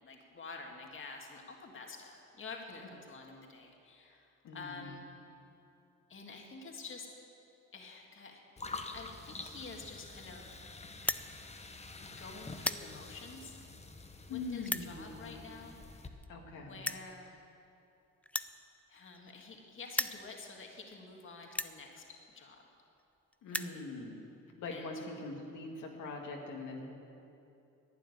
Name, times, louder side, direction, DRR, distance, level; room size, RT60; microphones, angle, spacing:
voice 1, 0.0-5.1 6.1-7.1 7.7-10.6 12.0-13.5 14.3-15.8 16.6-17.4 18.9-22.6 23.5-23.8 24.7-24.9, left 4 dB, 40° left, 1 dB, 1.9 m, -49 dB
voice 2, 4.4-5.1 14.3-15.4 16.3-16.9 23.4-24.2 24.6-26.9, left 3 dB, 80° left, 0 dB, 2.0 m, -42 dB
sound 1, 8.6-16.1, left 3 dB, 20° left, 1.1 m, -47 dB
sound 2, 11.0-11.3 11.9-12.1 12.4-12.9 13.6-13.7 14.6-14.9 15.9-16.3 16.8-17.1 18.2-19.6 19.8-20.2 20.9-21.0 21.5-21.8 22.7-22.8 23.0-23.1 23.3-23.8, left 1 dB, 5° left, 0.4 m, -36 dB
11.5 x 9.1 x 9.8 m, 2.7 s
cardioid pair, 90°, 30 cm